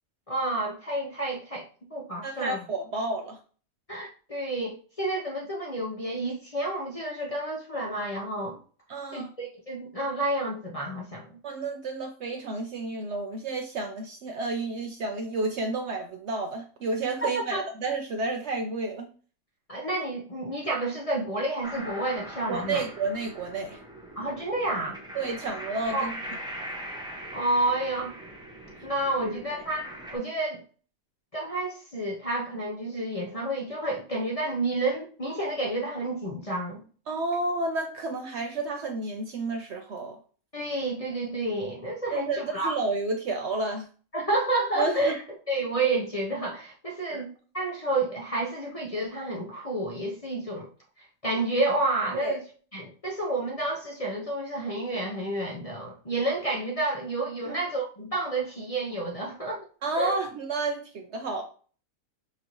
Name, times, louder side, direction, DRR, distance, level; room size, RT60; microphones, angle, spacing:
voice 1, 0.3-2.6 3.9-8.6 9.1-11.4 17.5-17.7 19.7-22.8 24.2-25.0 25.9-26.1 27.3-28.1 28.8-29.8 30.1-30.6 31.3-36.8 40.5-42.8 44.1-45.2 45.5-50.7 51.2-52.4 52.7-59.6 60.0-60.1, right 2 dB, 35° left, 0.6 m, -30 dB
voice 2, 2.2-3.4 8.9-9.3 11.4-19.1 22.5-23.8 25.1-26.1 29.2-29.6 37.1-40.2 42.1-43.9 44.8-45.1 47.1-47.2 52.1-52.4 57.5-57.6 59.8-61.4, right 3 dB, 65° right, 0.7 m, -31 dB
sound 1, 21.6-30.2, right 1 dB, 5° right, 0.7 m, -41 dB
5.9 x 2.7 x 3.0 m
omnidirectional pair, 1.5 m